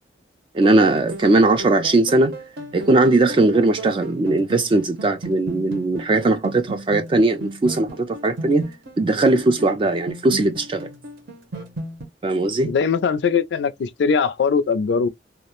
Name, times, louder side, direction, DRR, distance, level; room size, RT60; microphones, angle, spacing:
voice 1, 0.5-2.4 2.7-10.9 12.2-12.7, right 2 dB, 30° right, 0.3 m, -19 dB
sound 1, 0.6-12.0, right 1 dB, 65° right, 0.7 m, -36 dB
voice 2, 12.6-15.1, left 5 dB, 70° left, 0.3 m, -20 dB
2.3 x 2.1 x 2.9 m
head